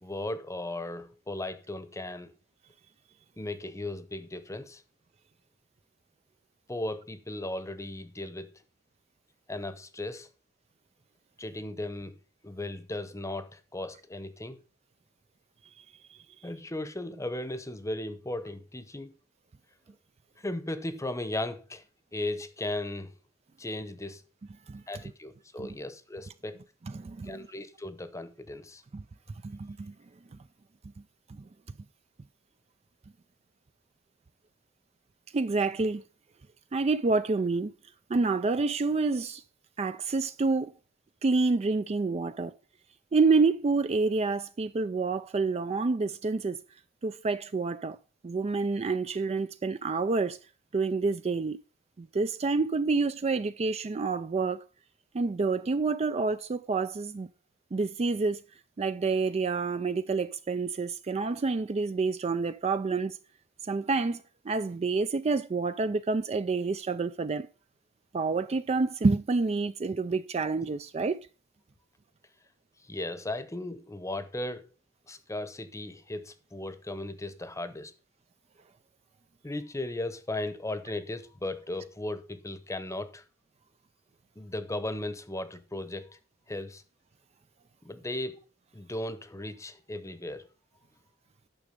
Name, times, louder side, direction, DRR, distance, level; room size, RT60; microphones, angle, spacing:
voice 1, 0.0-2.3 3.4-4.8 6.7-8.5 9.5-10.3 11.4-12.2 12.4-14.6 16.4-19.1 20.4-21.8 22.1-23.1 23.6-24.2 24.9-26.6 27.2-28.8 72.8-74.6 75.1-77.9 79.4-83.2 84.4-86.2 86.5-86.8 87.8-88.4 88.7-90.5, left 1 dB, 15° left, 0.9 m, -36 dB
voice 2, 26.9-27.4 28.9-29.0 29.4-29.9 31.3-31.4 35.3-36.0 36.7-37.7 38.1-39.4 39.8-40.7 41.2-42.5 43.1-46.6 47.0-48.0 48.2-50.4 50.7-51.6 52.0-54.6 55.1-57.3 57.7-58.4 58.8-63.2 63.7-67.5 68.1-71.2, right 4 dB, 30° right, 0.4 m, -28 dB
9.8 x 6.1 x 5.2 m
head